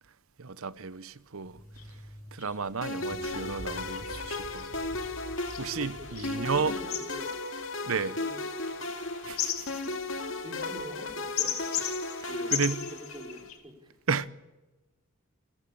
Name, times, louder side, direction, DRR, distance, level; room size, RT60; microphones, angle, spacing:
voice 1, 0.4-1.6 2.3-4.7 5.6-6.7 7.8-8.1 9.3-9.7 12.2-12.8 14.1-14.3, right 5 dB, 80° right, 0.9 m, -32 dB
sound 1, 1.4-6.4, equal, 35° left, 6.0 m, -49 dB
sound 2, 1.5-1.6 1.8-1.9 2.4-2.5 3.0-13.6, left 10 dB, 90° left, 3.1 m, -38 dB
sound 3, 2.8-13.5, left 2 dB, 65° left, 2.4 m, -36 dB
voice 2, 5.7-7.4 8.0-9.5 10.3-11.7 12.3-14.0, left 1 dB, 20° right, 5.0 m, -46 dB
28.5 x 15.0 x 8.7 m
head